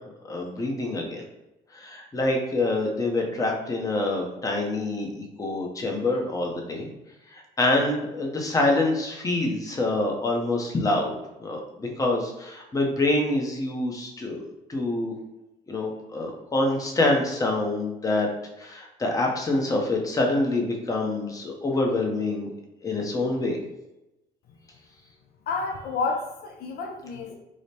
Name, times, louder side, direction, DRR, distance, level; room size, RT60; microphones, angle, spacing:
voice 1, 0.2-1.2 1.7-6.9 7.3-11.1 11.4-15.1 15.7-18.3 18.6-22.5 22.8-23.6, left 2 dB, 20° left, 1 dB, 0.7 m, -26 dB
voice 2, 25.5-27.4, left 4 dB, 65° left, 3 dB, 0.5 m, -30 dB
4.9 x 2.1 x 2.8 m, 0.94 s
cardioid pair, 110°, 17 cm